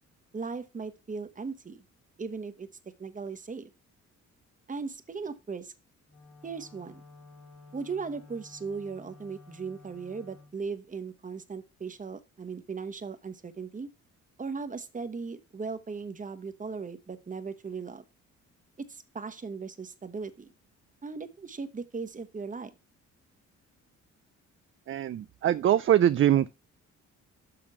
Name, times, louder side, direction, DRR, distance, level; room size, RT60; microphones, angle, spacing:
voice 1, 0.3-1.8 2.2-2.7 3.0-3.7 4.7-5.7 6.4-7.0 7.7-13.9 14.4-18.0 18.9-20.5 21.0-22.7, right 5 dB, 25° right, 1.2 m, -38 dB
Wind instrument woodwind instrument, 6.1-10.6, left 3 dB, 70° left, 2.3 m, -52 dB
voice 2, 24.9-26.5, right 11 dB, 45° right, 0.4 m, -23 dB
6.8 x 5.7 x 5.7 m
cardioid pair, 90°, 30 cm